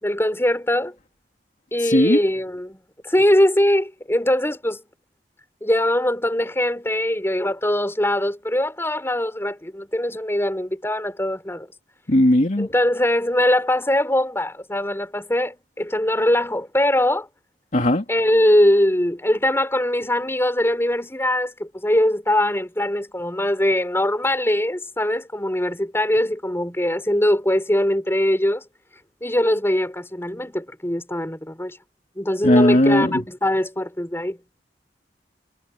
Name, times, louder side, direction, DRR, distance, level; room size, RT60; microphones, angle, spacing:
voice 1, 0.0-1.0 1.7-4.8 5.6-11.7 12.6-17.3 18.1-28.6 29.2-31.8 32.2-34.4, left 1 dB, 15° left, 4.8 m, -21 dB
voice 2, 1.8-2.2 12.1-12.7 17.7-18.0 32.4-33.2, left 1 dB, 45° left, 2.5 m, -17 dB
head